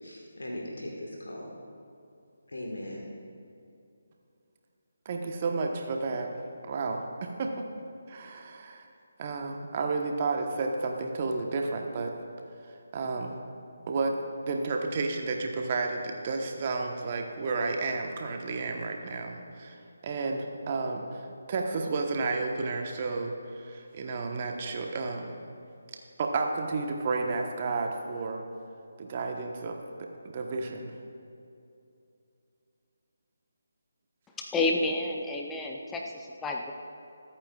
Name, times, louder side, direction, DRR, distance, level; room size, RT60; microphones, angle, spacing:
voice 1, 0.0-1.5 2.5-3.1, left 1 dB, 70° left, -2 dB, 1.8 m, -39 dB
voice 2, 5.0-6.3 6.7-7.5 8.1-8.9 9.2-12.1 12.9-13.4 13.9-14.1 14.4-19.7 20.0-25.4 26.2-28.4 29.0-30.1 30.3-30.9, right 3 dB, 35° right, 2 dB, 1.2 m, -31 dB
voice 3, 34.4-36.7, left 2 dB, 10° left, 1 dB, 0.6 m, -30 dB
25.0 x 8.8 x 2.4 m, 2.7 s
figure-of-eight pair, 150°, 0 cm